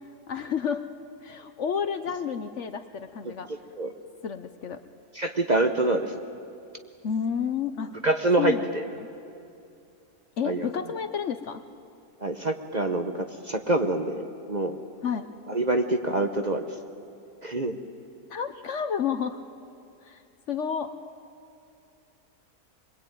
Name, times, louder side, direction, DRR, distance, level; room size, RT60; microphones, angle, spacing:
voice 1, 0.3-0.9 1.2-3.5 4.2-4.8 7.0-7.9 8.4-8.7 9.0-9.1 10.4-11.6 15.0-15.3 18.3-19.4 20.0-20.2 20.5-20.9, left 7 dB, 55° left, 9 dB, 0.9 m, -30 dB
voice 2, 3.2-3.9 5.1-6.2 8.0-8.8 10.4-10.7 12.2-14.8 15.5-16.8 17.4-17.8, right 2 dB, 35° right, 6 dB, 0.9 m, -26 dB
22.5 x 22.5 x 9.1 m, 2.6 s
omnidirectional pair, 1.7 m